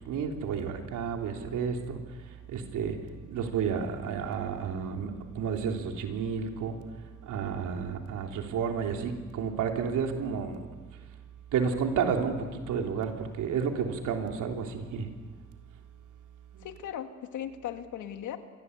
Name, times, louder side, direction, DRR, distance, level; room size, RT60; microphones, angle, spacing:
voice 1, 0.1-2.0 2.5-3.0 3.3-6.8 7.2-10.7 11.5-15.1 16.5-16.7, right 6 dB, 80° right, 3 dB, 3.6 m, -31 dB
voice 2, 16.6-18.4, left 10 dB, 80° left, 6 dB, 2.3 m, -37 dB
27.0 x 21.0 x 8.3 m, 1.4 s
cardioid pair, 90°, 30 cm